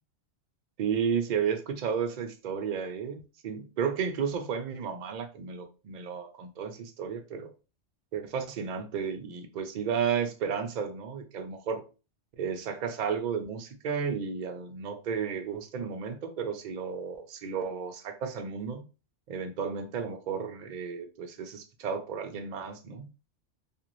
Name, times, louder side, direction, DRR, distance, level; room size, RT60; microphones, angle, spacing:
voice 1, 0.8-7.5 8.1-11.8 12.4-18.8 19.3-23.1, right 6 dB, 60° right, 0.5 m, -33 dB
2.5 x 2.5 x 2.9 m
omnidirectional pair, 1.2 m